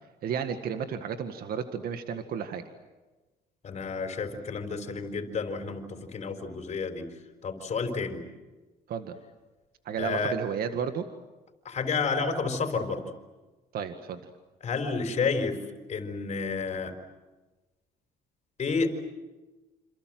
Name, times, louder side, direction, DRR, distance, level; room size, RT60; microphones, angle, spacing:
voice 1, 0.2-2.7 8.9-9.2 9.9-11.0 13.7-14.3, right 7 dB, 60° right, 8 dB, 1.9 m, -32 dB
voice 2, 3.6-7.1 7.4-8.2 10.0-10.4 11.6-13.0 14.6-15.6 15.9-16.9 18.6-18.9, left 4 dB, 40° left, 5 dB, 4.4 m, -30 dB
27.5 x 27.5 x 7.8 m, 1.2 s
cardioid pair, 110°, 17 cm